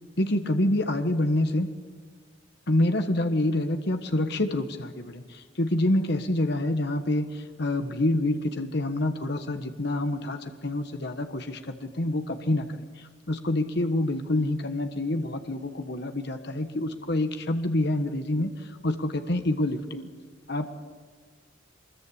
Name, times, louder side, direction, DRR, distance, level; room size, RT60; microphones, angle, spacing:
voice 1, 0.2-1.7 2.7-20.1 20.5-20.8, left 1 dB, 60° left, 7 dB, 1.4 m, -27 dB
24.5 x 21.5 x 8.6 m, 1.5 s
head